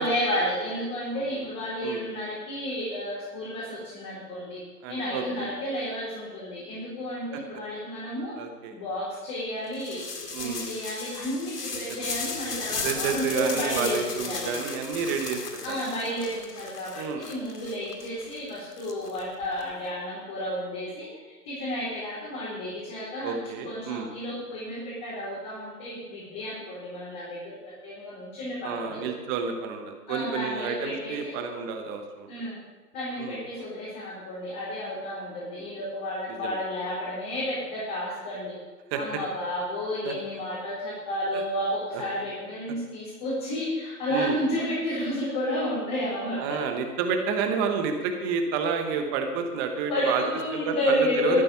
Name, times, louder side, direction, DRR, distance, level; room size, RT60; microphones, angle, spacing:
voice 1, 0.0-4.6 4.9-8.3 8.7-14.5 15.6-21.1 21.4-23.4 23.6-27.5 27.8-29.1 30.1-31.4 32.3-32.6 32.9-38.5 38.9-46.6 49.9-51.4, left 1 dB, 30° left, -8 dB, 4.5 m, -31 dB
voice 2, 4.8-5.5 8.4-8.7 10.3-10.7 11.7-12.1 12.8-15.4 15.7-15.8 16.9-17.2 23.2-24.1 28.6-32.3 33.2-33.4 36.3-36.6 38.9-39.0 40.0-40.1 41.3-41.4 41.9-42.0 44.1-44.4 46.4-50.2 50.5-51.4, right 6 dB, 15° right, 5 dB, 0.9 m, -30 dB
sound 1, 9.7-19.6, left 4 dB, 70° left, 2.1 m, -36 dB
13.5 x 11.0 x 5.6 m, 1.3 s
figure-of-eight pair, 140°, 48 cm